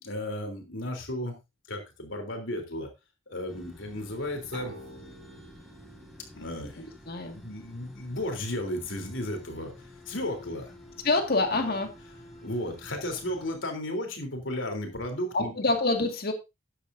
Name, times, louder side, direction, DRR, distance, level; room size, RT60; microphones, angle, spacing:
voice 1, 0.0-1.4 1.7-2.9 3.3-4.8 6.3-6.8 7.3-9.7 10.1-10.7 12.4-15.5, left 1 dB, 75° left, 4 dB, 3.5 m, -34 dB
sound 1, 3.5-13.5, left 1 dB, ahead, 3.9 m, -50 dB
sound 2, 4.5-8.0, right 2 dB, 45° right, 5.4 m, -49 dB
voice 2, 6.8-7.4 11.0-11.9 15.3-16.3, left 3 dB, 55° left, 5 dB, 2.0 m, -26 dB
13.0 x 10.0 x 2.7 m, 0.24 s
head